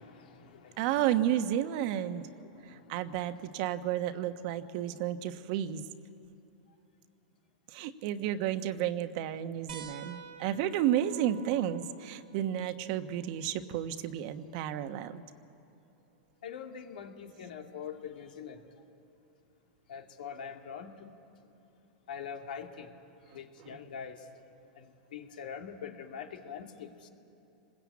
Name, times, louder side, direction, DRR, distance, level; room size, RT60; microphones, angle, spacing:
voice 1, 0.0-0.8 2.4-2.8 16.4-18.6 19.9-20.9 22.1-22.9 23.3-24.2 24.8-27.1, left 7 dB, 85° left, 4 dB, 2.3 m, -43 dB
voice 2, 0.8-2.3 2.7-5.8 7.7-15.2 23.6-23.8, right 11 dB, 55° right, 9 dB, 1.2 m, -32 dB
sound 1, 9.7-14.8 16.3-16.4 18.1-18.2, right 8 dB, 80° right, 1.6 m, -51 dB
27.5 x 20.5 x 8.5 m, 2.9 s
supercardioid pair, 130°, 5 cm